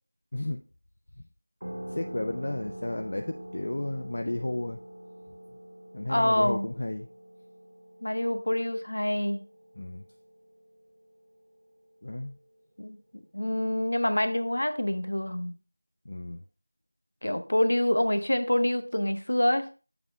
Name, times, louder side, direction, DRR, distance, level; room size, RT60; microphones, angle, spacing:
voice 1, 0.3-0.6 1.2-1.3 1.9-4.8 5.9-7.1 9.8-10.1 12.0-12.4 16.1-16.4, left 1 dB, 35° left, 6 dB, 0.4 m, -33 dB
sound 1, 1.6-10.8, right 1 dB, 80° right, 2.0 m, -44 dB
voice 2, 6.1-6.7 8.0-9.4 12.8-15.5 17.2-19.7, left 1 dB, 60° left, 9 dB, 0.9 m, -26 dB
7.0 x 6.6 x 3.3 m, 0.34 s
figure-of-eight pair, 175°, 0 cm